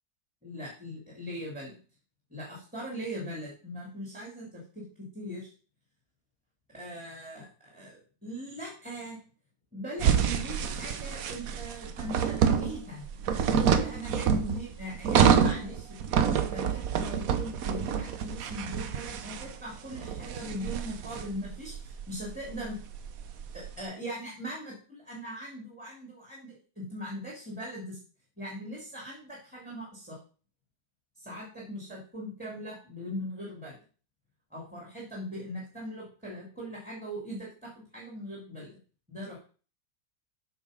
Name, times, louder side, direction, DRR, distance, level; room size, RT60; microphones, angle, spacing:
voice 1, 0.4-1.7 2.3-5.5 6.8-9.2 9.7-16.0 16.3-22.8 23.5-28.0 28.4-30.2 31.2-33.8 34.5-38.8 39.1-39.4, equal, 5° right, -3 dB, 2.8 m, -40 dB
sound 1, 10.0-23.7, right 7 dB, 65° right, 1.2 m, -28 dB
8.2 x 5.9 x 5.2 m, 0.38 s
omnidirectional pair, 1.7 m